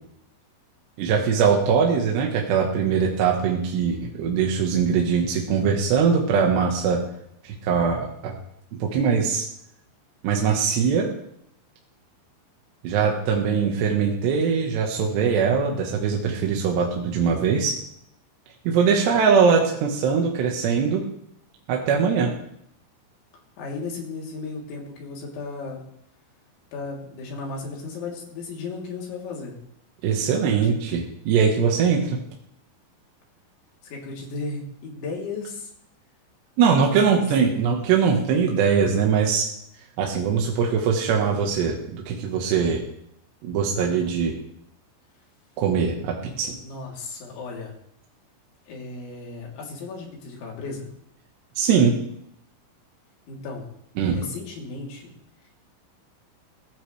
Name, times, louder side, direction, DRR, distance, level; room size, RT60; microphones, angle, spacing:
voice 1, 1.0-7.0 7.4-8.3 8.8-9.5 10.2-11.1 12.8-17.7 18.6-21.0 21.7-22.3 30.0-32.2 36.6-39.5 40.0-42.8 43.4-44.3 45.6-46.5 51.6-51.9 54.0-54.2, right 6 dB, 65° right, 0 dB, 3.3 m, -21 dB
voice 2, 23.6-25.8 26.7-29.6 30.6-30.7 33.8-35.7 37.1-37.6 46.2-46.3 46.6-47.7 48.7-50.9 53.3-53.7 54.1-55.1, left 3 dB, 70° left, -1 dB, 5.6 m, -35 dB
21.0 x 16.5 x 3.4 m, 0.74 s
omnidirectional pair, 5.7 m